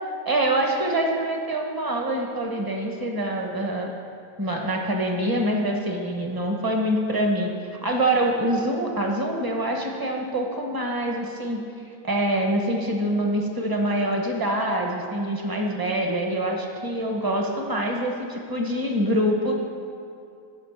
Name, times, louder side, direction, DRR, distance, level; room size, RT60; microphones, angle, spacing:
voice 1, 0.2-4.0 4.4-7.5 7.8-11.6 12.0-19.5, right 1 dB, 20° right, 1 dB, 0.7 m, -25 dB
10.5 x 6.1 x 7.2 m, 2.5 s
omnidirectional pair, 1.8 m